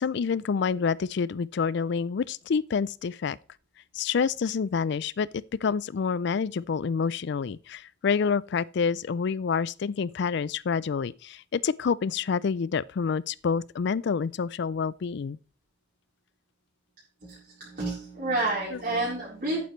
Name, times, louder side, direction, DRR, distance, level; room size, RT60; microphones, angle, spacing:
voice 1, 0.0-3.4 3.9-15.4 18.7-18.8, left 5 dB, 65° left, 0.4 m, -28 dB
voice 2, 17.2-19.6, right 2 dB, 50° right, 4.0 m, -30 dB
11.0 x 9.3 x 3.2 m
head